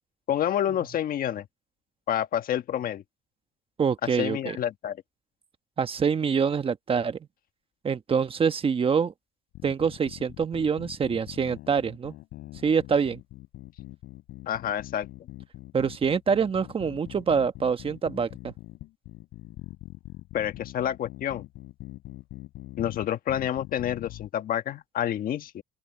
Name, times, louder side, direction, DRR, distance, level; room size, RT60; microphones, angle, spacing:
voice 1, 0.3-1.5 2.1-3.0 4.0-5.0 14.5-15.1 20.3-21.4 22.8-25.6, left 10 dB, 60° left, 1.5 m, -28 dB
voice 2, 3.8-4.6 5.8-7.2 7.8-9.1 9.6-12.1 12.6-13.2 15.7-18.5, right 6 dB, 35° right, 1.2 m, -25 dB
sound 1, 9.5-24.3, left 17 dB, 85° left, 4.3 m, -43 dB
open air
cardioid pair, 110°, 17 cm